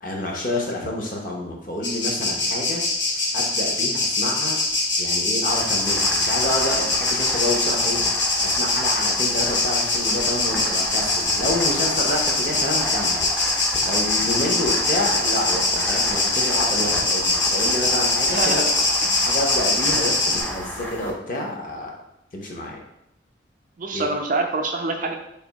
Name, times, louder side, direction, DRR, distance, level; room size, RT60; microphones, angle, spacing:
voice 1, 0.0-2.8 3.3-4.6 5.0-8.0 8.4-13.2 13.8-18.6 19.2-22.0 22.3-22.8 23.9-24.0, left 1 dB, 45° left, -1 dB, 0.8 m, -28 dB
sound 1, 1.8-20.4, left 2 dB, 70° left, 1.0 m, -23 dB
sound 2, 5.5-21.1, equal, 10° left, 0.5 m, -33 dB
voice 2, 18.3-18.6 19.1-19.2 23.8-25.1, right 3 dB, 45° right, 3 dB, 0.4 m, -25 dB
3.4 x 2.6 x 4.0 m, 0.83 s
head